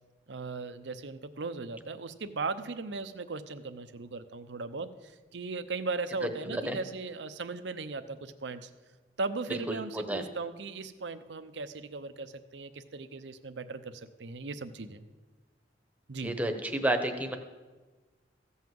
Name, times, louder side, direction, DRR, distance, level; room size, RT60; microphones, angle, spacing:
voice 1, 0.3-8.7 9.2-15.0 16.1-16.4, right 3 dB, 80° right, 11 dB, 0.7 m, -38 dB
voice 2, 9.5-10.2 16.2-17.4, right 1 dB, 10° right, 5 dB, 1.0 m, -31 dB
15.0 x 5.6 x 7.7 m, 1.3 s
head